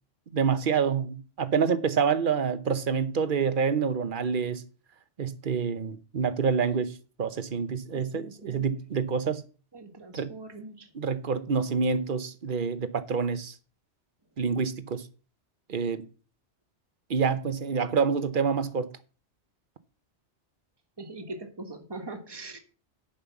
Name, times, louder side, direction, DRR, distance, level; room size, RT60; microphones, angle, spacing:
voice 1, 0.3-4.6 5.2-9.4 10.1-10.3 10.9-13.5 14.4-15.1 15.7-16.1 17.1-18.9, right 6 dB, 50° right, 1.0 m, -27 dB
voice 2, 7.9-8.7 9.7-10.9 21.0-22.6, right 2 dB, 20° right, 1.5 m, -42 dB
10.5 x 5.5 x 7.1 m
omnidirectional pair, 1.2 m